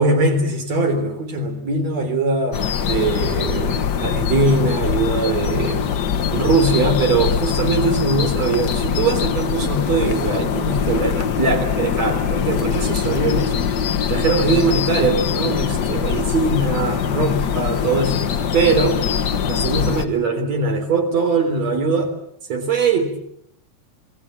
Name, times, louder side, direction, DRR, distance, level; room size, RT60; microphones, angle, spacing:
voice 1, 0.0-6.0 6.3-13.5 14.1-19.0 19.5-22.1 22.5-23.2, right 3 dB, 65° right, 5 dB, 4.9 m, -21 dB
sound 1, 2.5-20.1, left 7 dB, 65° left, 1.0 m, -22 dB
27.0 x 20.5 x 7.6 m, 0.72 s
omnidirectional pair, 3.3 m